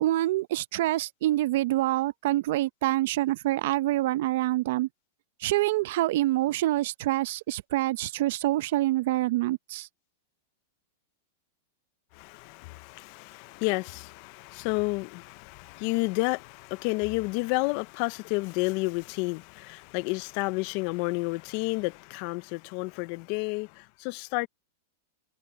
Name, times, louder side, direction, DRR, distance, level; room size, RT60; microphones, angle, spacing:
voice 1, 0.0-4.9 5.4-9.9, right 16 dB, 60° right, 0.7 m, -26 dB
voice 2, 12.1-24.5, left 26 dB, 50° left, 0.6 m, -31 dB
open air
supercardioid pair, 140°, 0 cm